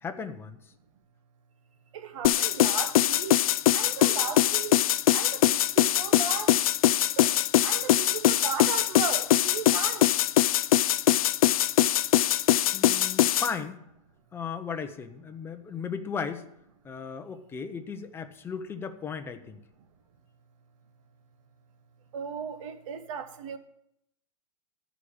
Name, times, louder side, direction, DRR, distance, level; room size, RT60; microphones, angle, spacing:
voice 1, 0.0-0.7 12.7-13.8 14.3-16.5 16.8-19.6, left 6 dB, 15° left, 0.7 m, -36 dB
voice 2, 1.9-3.4 3.7-4.8 5.1-6.5 7.2-7.3 7.6-10.1 22.1-23.6, right 7 dB, 60° right, 1.2 m, -36 dB
sound 1, 2.2-13.5, left 12 dB, 75° left, 0.4 m, -22 dB
13.5 x 5.0 x 7.0 m
hypercardioid pair, 140°, 18 cm